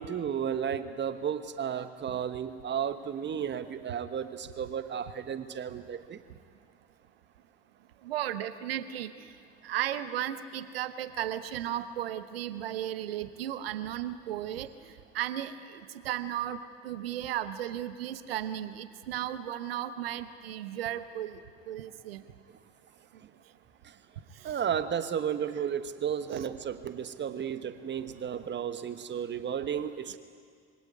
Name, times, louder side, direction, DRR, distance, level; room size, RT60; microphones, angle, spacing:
voice 1, 0.0-6.2 23.8-23.9 24.4-30.2, right 8 dB, 35° right, 11 dB, 1.3 m, -33 dB
voice 2, 8.0-9.3 9.6-14.7 15.1-21.4 21.7-22.2 24.4-24.5 26.3-26.5, right 11 dB, 75° right, 13 dB, 1.0 m, -35 dB
24.5 x 17.0 x 9.6 m, 2.1 s
figure-of-eight pair, 55°, 30 cm